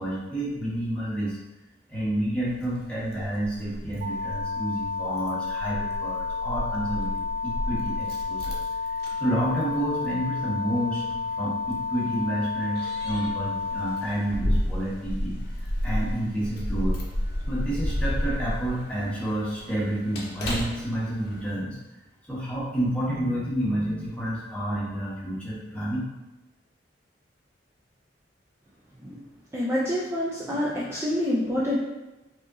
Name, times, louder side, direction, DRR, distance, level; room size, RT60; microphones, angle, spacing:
voice 1, 0.0-1.4 1.9-8.6 8.9-15.4 15.8-17.0 17.5-21.8 22.3-26.0, right 1 dB, 5° left, -8 dB, 1.1 m, -29 dB
Keys jangling, 2.5-21.5, equal, 55° left, 0.8 m, -33 dB
sound 1, 4.0-14.0, left 4 dB, 75° right, 1.0 m, -31 dB
voice 2, 29.5-31.8, left 1 dB, 15° right, -8 dB, 0.5 m, -27 dB
4.9 x 2.8 x 2.7 m, 1.1 s
head